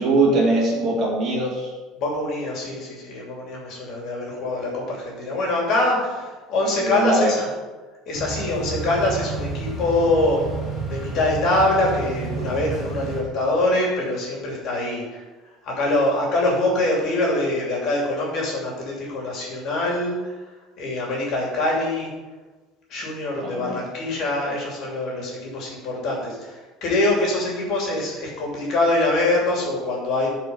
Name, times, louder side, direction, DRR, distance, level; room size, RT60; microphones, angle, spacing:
voice 1, 0.0-1.7 6.8-7.3 23.4-23.8, right 2 dB, 30° right, -3 dB, 2.5 m, -21 dB
voice 2, 2.0-7.5 8.1-10.4 10.9-15.2 15.6-20.4 20.8-22.1 22.9-30.3, left 2 dB, 45° left, -2 dB, 2.8 m, -24 dB
sound 1, 8.1-13.2, right 4 dB, 5° left, 3.5 m, -31 dB
12.5 x 4.8 x 5.6 m, 1.3 s
cardioid pair, 175°, 0 cm